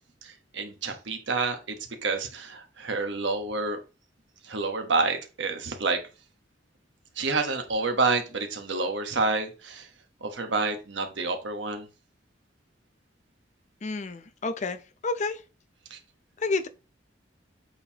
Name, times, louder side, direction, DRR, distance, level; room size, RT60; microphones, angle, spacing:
voice 1, 0.2-3.8 4.4-6.0 7.2-9.9 10.2-11.9 15.9-16.0, right 3 dB, 70° right, 1.2 m, -28 dB
voice 2, 13.8-15.4 16.4-16.7, left 3 dB, 40° left, 0.5 m, -30 dB
7.9 x 4.4 x 2.9 m
head